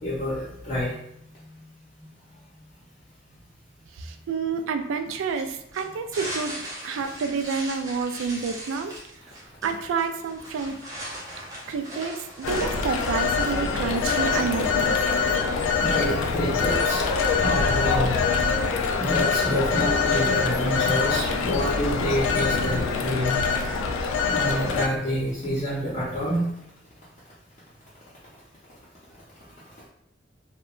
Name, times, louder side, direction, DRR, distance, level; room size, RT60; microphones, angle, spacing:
voice 1, 0.0-0.9 15.8-17.0 17.4-18.2 19.0-23.5 24.3-26.5, equal, 35° left, -9 dB, 0.5 m, -27 dB
voice 2, 3.9-8.9 9.4-10.8 11.7-15.0, right 5 dB, 80° right, 7 dB, 0.3 m, -29 dB
sound 1, 5.1-15.0, right 1 dB, 15° right, 0.5 m, -39 dB
Telephone, 12.4-24.9, left 5 dB, 85° left, 0.3 m, -24 dB
2.8 x 2.1 x 2.4 m, 0.76 s
head